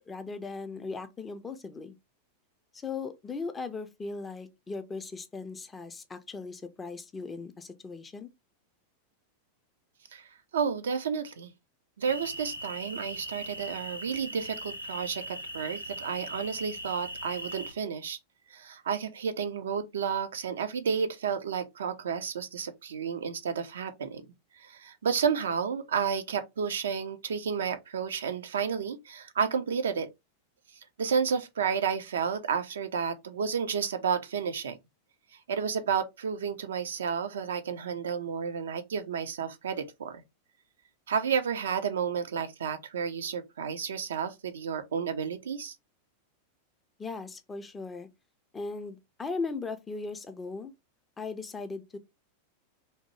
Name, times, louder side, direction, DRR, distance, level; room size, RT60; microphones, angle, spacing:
voice 1, 0.1-2.0 2.7-8.3 47.0-48.1 48.5-50.7 51.2-52.0, left 4 dB, 15° left, 0.4 m, -38 dB
voice 2, 10.1-11.5 12.0-18.2 18.5-24.3 24.6-30.1 31.0-34.8 35.5-40.2 41.1-45.8, right 6 dB, 65° right, 0.4 m, -31 dB
sound 1, 12.0-17.7, equal, 90° left, 0.5 m, -40 dB
2.8 x 2.0 x 3.0 m
figure-of-eight pair, 90°, 0 cm